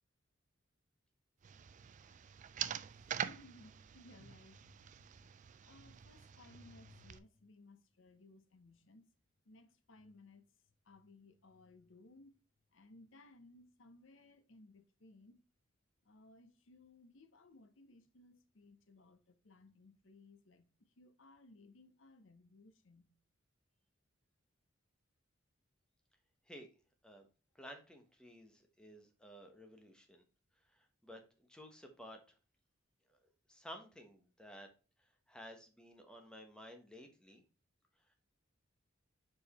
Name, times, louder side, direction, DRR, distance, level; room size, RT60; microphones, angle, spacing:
sound 1, 1.4-7.2, right 9 dB, 40° right, 0.3 m, -46 dB
voice 1, 2.9-9.1 9.4-10.5 10.8-12.3 12.7-15.4 16.0-23.1, left 2 dB, 70° left, 0.9 m, -61 dB
voice 2, 27.5-30.2 30.6-32.4 33.1-33.2 33.5-34.7 35.0-37.4, equal, 5° left, 1.1 m, -54 dB
4.9 x 4.8 x 4.2 m
head